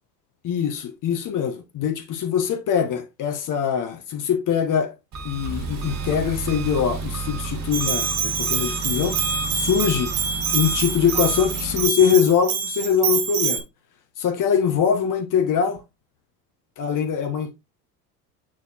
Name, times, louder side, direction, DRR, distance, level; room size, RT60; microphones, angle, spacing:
voice 1, 0.4-5.0 5.2-9.2 9.5-10.1 10.5-13.6 14.2-15.8 16.8-17.5, left 7 dB, 40° left, 1.4 m, -22 dB
Engine, 5.1-11.9, right 3 dB, 35° right, 1.8 m, -31 dB
Bell, 7.7-13.6, right 7 dB, 55° right, 1.7 m, -26 dB
9.3 x 4.2 x 2.5 m
figure-of-eight pair, 70°, 47 cm